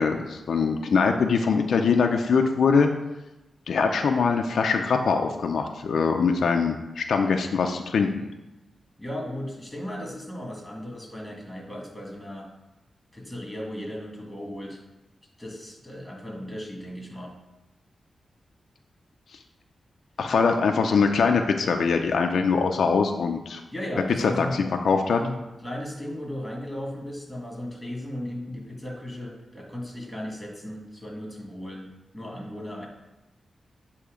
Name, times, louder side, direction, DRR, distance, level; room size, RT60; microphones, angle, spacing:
voice 1, 0.0-2.9 3.7-8.2 20.2-23.6 24.8-25.2, left 5 dB, 75° left, 4 dB, 0.4 m, -22 dB
voice 2, 9.0-12.5 13.1-14.8 15.4-17.4 20.2-20.3 23.7-24.6 25.2-31.9 32.1-32.9, left 1 dB, 5° left, -1 dB, 1.6 m, -36 dB
8.1 x 2.8 x 5.0 m, 0.99 s
wide cardioid pair, 95°, 0 cm